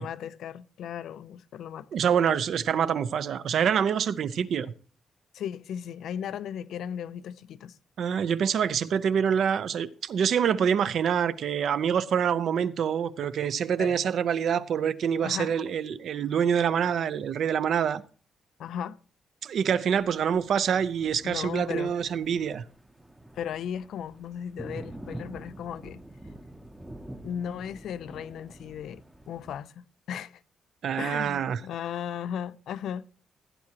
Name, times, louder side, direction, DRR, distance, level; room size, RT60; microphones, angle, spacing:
voice 1, 0.0-1.9 5.3-7.8 13.8-14.0 15.2-15.5 18.6-19.0 21.2-21.9 23.3-26.0 27.2-30.4 31.0-33.0, left 9 dB, 75° left, 0.4 m, -36 dB
voice 2, 1.9-4.7 8.0-18.0 19.4-22.6 30.8-31.6, right 8 dB, 60° right, 0.6 m, -26 dB
Thunder, 19.9-29.6, right 1 dB, 5° right, 0.7 m, -46 dB
16.0 x 9.6 x 2.9 m
cardioid pair, 160°, 0 cm